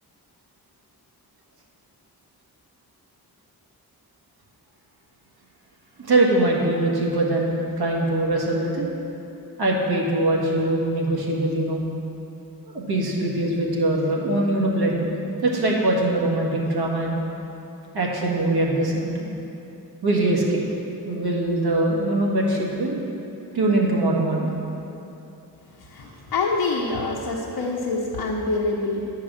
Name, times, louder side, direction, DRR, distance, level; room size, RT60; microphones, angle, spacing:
voice 1, 6.0-8.8 9.6-11.8 12.7-15.1 15.4-17.2 17.9-19.3 20.0-20.6 21.0-23.0 23.5-24.5, right 2 dB, 75° right, -2 dB, 1.7 m, -22 dB
voice 2, 25.8-29.1, left 3 dB, 70° left, -3 dB, 0.9 m, -26 dB
10.0 x 4.7 x 7.3 m, 2.9 s
wide cardioid pair, 120°, 38 cm